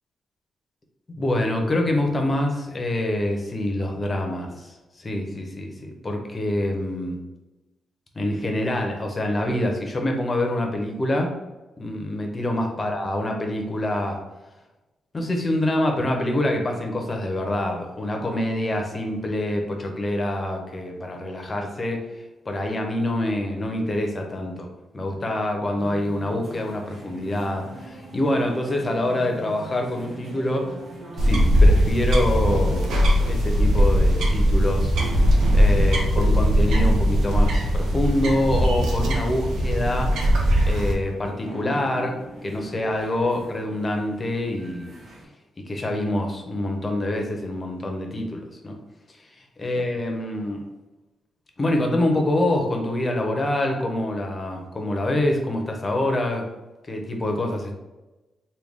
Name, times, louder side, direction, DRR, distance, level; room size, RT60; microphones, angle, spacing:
voice 1, 1.2-4.7 5.0-7.2 8.2-11.4 11.8-14.2 15.1-22.0 22.5-24.7 24.9-30.7 31.2-32.9 33.3-34.9 35.5-40.2 40.7-45.0 45.7-48.8 49.6-50.7 51.6-56.5 56.9-57.7, left 1 dB, 20° left, 2 dB, 0.5 m, -26 dB
sound 1, 25.8-45.2, right 2 dB, 55° right, 1.3 m, -42 dB
sound 2, 31.2-40.9, equal, 90° right, 0.6 m, -19 dB
3.2 x 2.2 x 3.5 m, 1.1 s
wide cardioid pair, 160°, 0 cm